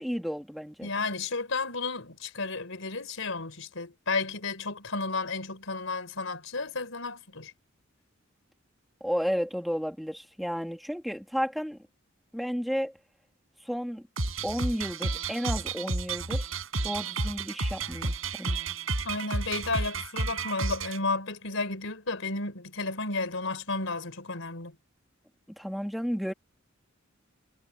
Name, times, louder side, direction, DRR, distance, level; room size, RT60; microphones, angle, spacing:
voice 1, 0.0-0.9 9.0-11.8 12.3-13.0 13.6-14.1 14.4-16.5 16.8-18.6 25.6-26.3, equal, ahead, 2.5 m, -32 dB
voice 2, 0.8-7.5 19.0-24.8, left 3 dB, 75° left, 4.2 m, -32 dB
sound 1, 14.2-21.0, right 3 dB, 90° right, 4.9 m, -31 dB
head